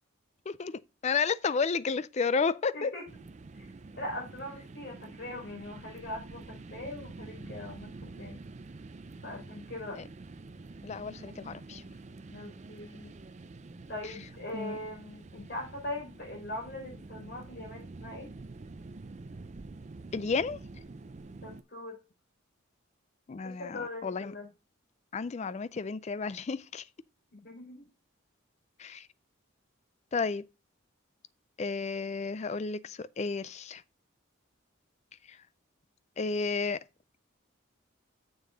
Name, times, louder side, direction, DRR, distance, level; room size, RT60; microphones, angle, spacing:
voice 1, 0.5-2.9 10.8-11.8 14.0-14.1 14.5-14.8 20.1-20.6 23.3-24.3 25.1-26.9 28.8-29.1 30.1-30.4 31.6-33.8 35.3-35.4 36.2-36.8, left 4 dB, 35° left, 0.3 m, -32 dB
voice 2, 2.7-3.0 3.5-3.6 4.0-8.4 9.2-10.0 12.3-13.1 13.9-18.3 21.4-22.0 23.4-24.5 27.3-27.9, left 1 dB, 50° left, 4.6 m, -41 dB
sound 1, 3.1-21.6, right 3 dB, 35° right, 0.4 m, -47 dB
7.3 x 6.4 x 3.9 m
head